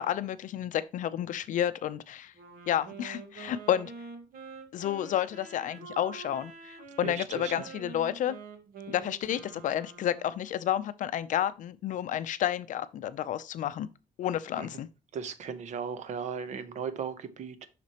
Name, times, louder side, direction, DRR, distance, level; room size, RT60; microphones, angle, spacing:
voice 1, 0.0-2.3 2.7-3.9 4.7-8.4 8.9-13.9 14.2-14.9, left 10 dB, 60° left, 0.5 m, -31 dB
Wind instrument woodwind instrument, 2.3-10.6, right 5 dB, 70° right, 1.6 m, -46 dB
voice 2, 7.0-7.7 14.6-14.7 15.1-17.7, right 6 dB, 50° right, 0.8 m, -37 dB
7.4 x 5.9 x 2.9 m
cardioid pair, 180°, 15 cm